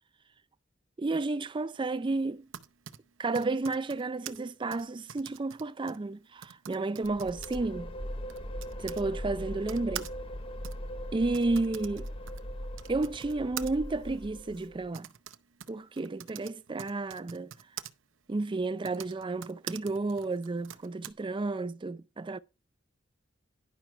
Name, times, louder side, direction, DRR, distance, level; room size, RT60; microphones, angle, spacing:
voice 1, 1.0-2.5 3.2-7.9 8.8-10.1 11.1-12.1 12.9-15.1 15.7-17.5 18.3-22.4, right 3 dB, 25° right, 0.4 m, -32 dB
Typing, 2.2-9.1 9.6-17.9 18.7-21.1, right 10 dB, 80° right, 0.7 m, -46 dB
sound 1, 7.0-14.9, equal, 30° left, 0.7 m, -40 dB
10.5 x 5.9 x 4.4 m
head